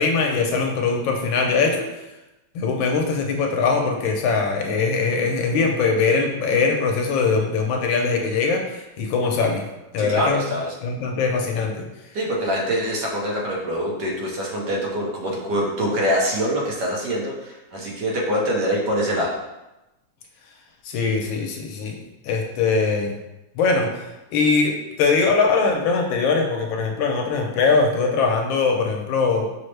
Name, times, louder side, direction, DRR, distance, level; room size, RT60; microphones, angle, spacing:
voice 1, 0.0-1.9 2.5-9.6 9.9-10.4 10.8-11.9 20.8-22.0 22.2-23.1 23.5-29.5, left 4 dB, 85° left, 2 dB, 1.4 m, -21 dB
voice 2, 10.0-10.7 12.1-19.4, equal, 65° right, -2 dB, 1.3 m, -24 dB
5.8 x 2.1 x 3.2 m, 0.99 s
omnidirectional pair, 2.1 m